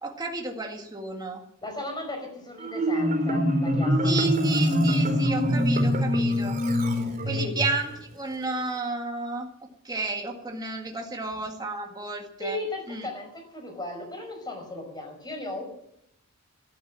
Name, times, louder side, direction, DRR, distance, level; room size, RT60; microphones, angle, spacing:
voice 1, 0.0-1.4 4.0-6.6 7.3-9.5 9.8-12.6 12.9-13.1, right 3 dB, 20° right, 2 dB, 1.9 m, -32 dB
voice 2, 1.6-4.3 7.2-7.5 12.4-15.6, left 2 dB, 20° left, 3 dB, 5.2 m, -36 dB
Marimba xylophone, 2.6-7.7, equal, 35° right, 4.2 m, -24 dB
13.0 x 12.5 x 8.9 m, 0.74 s
head